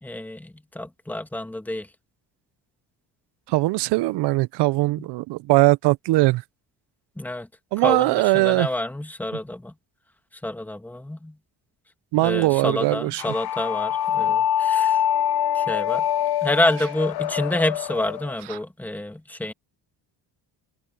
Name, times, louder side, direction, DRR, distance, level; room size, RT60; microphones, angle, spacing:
voice 1, 0.0-1.9 5.0-5.1 7.2-7.5 7.8-9.7 10.4-11.4 12.2-15.0 15.5-16.0 16.4-19.5, left 1 dB, 5° left, 1.8 m, -28 dB
voice 2, 3.5-6.4 7.7-8.7 12.1-13.3 18.5-18.6, right 20 dB, 75° right, 0.5 m, -20 dB
sound 1, 13.2-18.3, left 10 dB, 60° left, 1.0 m, -24 dB
cardioid pair, 150°, 42 cm